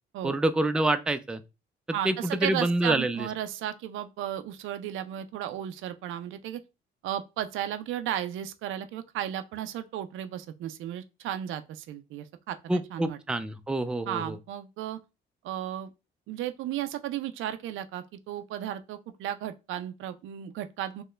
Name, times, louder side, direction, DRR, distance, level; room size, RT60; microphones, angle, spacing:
voice 1, 0.2-1.4 2.0-3.3 12.7-14.4, right 2 dB, 5° right, 0.3 m, -27 dB
voice 2, 1.9-6.6 7.0-13.2 14.1-15.0 15.4-15.9 16.3-21.0, right 11 dB, 80° right, 0.4 m, -34 dB
4.4 x 2.1 x 3.2 m
cardioid pair, 90°, 20 cm